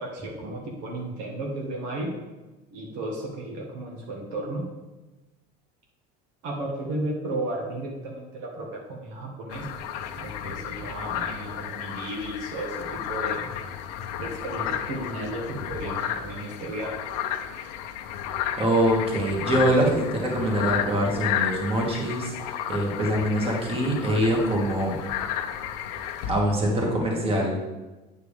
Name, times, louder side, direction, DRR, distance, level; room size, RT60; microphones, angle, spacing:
voice 1, 0.0-2.1 2.7-4.7 6.4-9.9 10.2-13.5 14.2-17.1, right 1 dB, 70° right, -1 dB, 1.8 m, -34 dB
sound 1, 9.5-26.3, left 9 dB, 85° left, 0.7 m, -32 dB
voice 2, 18.6-25.0 26.3-27.6, right 1 dB, 30° right, -1 dB, 2.3 m, -24 dB
9.1 x 4.6 x 5.1 m, 1.1 s
supercardioid pair, 115°, 20 cm